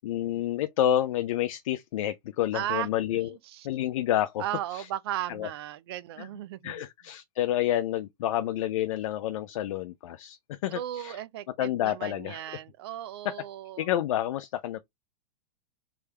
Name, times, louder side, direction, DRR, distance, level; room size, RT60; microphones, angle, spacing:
voice 1, 0.0-3.3 3.6-4.5 4.7-4.9 5.3-5.5 6.2-6.3 6.6-11.2 11.6-12.4 13.2-13.3 13.8-14.8, left 12 dB, 55° left, 0.4 m, -29 dB
voice 2, 2.5-2.9 3.2-3.7 4.4-6.9 10.7-13.9, right 13 dB, 40° right, 0.4 m, -36 dB
3.4 x 3.4 x 3.1 m
supercardioid pair, 165°, 21 cm